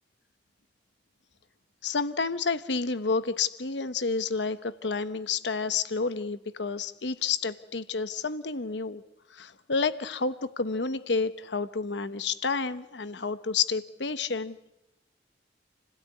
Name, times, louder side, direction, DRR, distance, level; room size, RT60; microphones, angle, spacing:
voice 1, 1.8-9.0 9.3-14.6, left 4 dB, 90° left, 12 dB, 1.0 m, -30 dB
29.0 x 17.5 x 9.7 m, 0.88 s
head